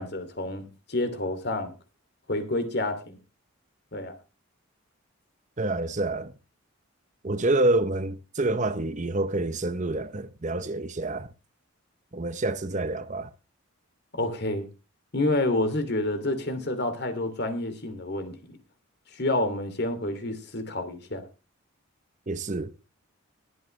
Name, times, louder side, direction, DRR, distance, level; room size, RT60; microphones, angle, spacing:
voice 1, 0.0-1.7 2.3-3.2 3.9-4.1 14.1-14.7 15.1-18.6 19.1-21.2, left 2 dB, 50° left, 2.7 m, -29 dB
voice 2, 5.6-6.3 7.2-11.3 12.1-13.3 22.3-22.7, right 2 dB, 35° right, 0.8 m, -27 dB
21.5 x 7.8 x 3.2 m
head